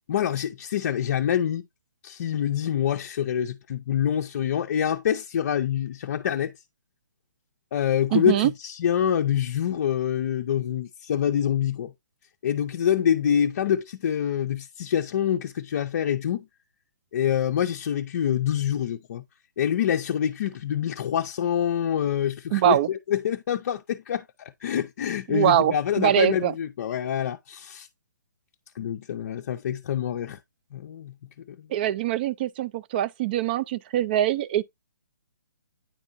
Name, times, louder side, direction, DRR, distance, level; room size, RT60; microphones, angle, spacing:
voice 1, 0.1-1.6 2.0-6.5 7.7-11.9 12.4-16.5 17.1-19.2 19.6-27.9 28.7-30.4 30.7-31.1 31.5-31.7, left 9 dB, 45° left, 0.5 m, -26 dB
voice 2, 8.1-8.5 22.5-22.9 25.3-26.5 31.7-34.6, right 12 dB, 30° right, 0.3 m, -23 dB
9.0 x 4.3 x 2.6 m
hypercardioid pair, 145°, 10 cm